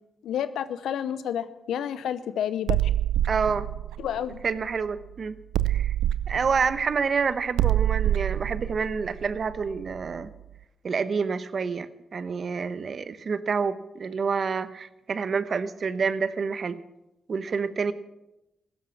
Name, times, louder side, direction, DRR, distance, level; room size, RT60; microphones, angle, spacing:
voice 1, 0.2-2.8 4.0-4.4, left 9 dB, 80° left, 14 dB, 0.7 m, -30 dB
sound 1, 2.7-5.0 5.5-10.2, right 12 dB, 85° right, 0.4 m, -26 dB
voice 2, 3.3-3.7 4.4-5.4 5.6-5.9 6.3-10.3 10.8-16.8 17.3-17.9, right 5 dB, 55° right, 14 dB, 1.0 m, -28 dB
16.0 x 12.5 x 5.9 m, 0.93 s
supercardioid pair, 40°, 0 cm